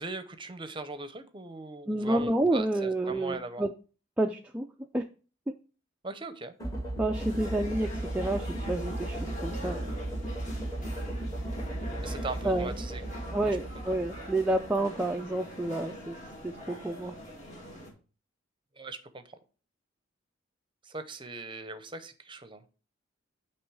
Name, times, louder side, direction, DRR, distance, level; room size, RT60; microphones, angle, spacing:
voice 1, 0.0-3.6 6.0-6.5 12.0-13.0 13.5-13.6 18.8-19.2 20.9-22.6, right 3 dB, 25° right, 10 dB, 0.7 m, -39 dB
voice 2, 1.9-3.7 4.2-4.7 4.9-5.0 7.0-7.9 8.1-9.9 12.4-12.8 13.3-16.2 16.4-17.1, right 1 dB, 5° right, 2 dB, 0.3 m, -29 dB
sound 1, 6.6-14.8, right 1 dB, 20° left, 1.5 m, -36 dB
sound 2, 7.1-17.9, equal, 40° left, 2.2 m, -44 dB
9.2 x 3.1 x 4.7 m, 0.36 s
head